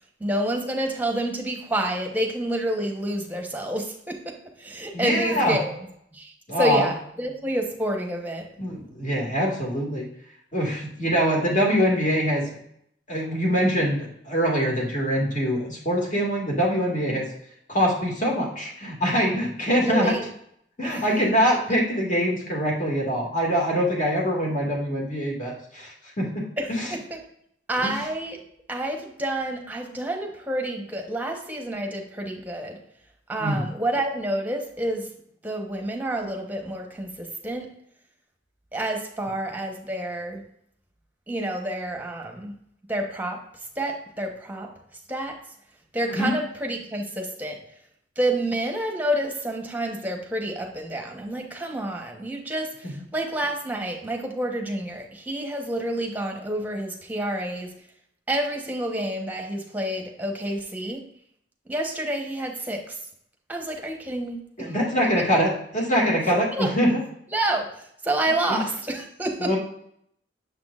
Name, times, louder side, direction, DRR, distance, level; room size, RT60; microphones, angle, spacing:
voice 1, 0.2-5.8 6.1-8.4 17.1-17.2 19.8-20.3 20.8-21.2 26.6-27.2 27.7-28.4 28.7-32.8 33.3-35.1 35.4-37.7 38.7-40.4 41.3-42.5 42.9-43.4 43.8-44.7 45.1-45.4 45.9-47.6 48.2-57.7 58.3-61.0 61.7-63.0 63.5-64.8 66.2-66.7 67.3-69.6, right 1 dB, 10° right, 2 dB, 0.9 m, -29 dB
voice 2, 4.9-5.6 6.5-6.9 8.6-10.1 10.5-12.5 13.1-17.3 17.7-20.1 20.8-26.9 27.8-27.9 33.4-33.6 46.1-46.3 64.6-67.0 68.5-68.6 69.4-69.6, equal, 45° left, -2 dB, 2.0 m, -24 dB
6.8 x 6.0 x 2.4 m, 0.70 s
head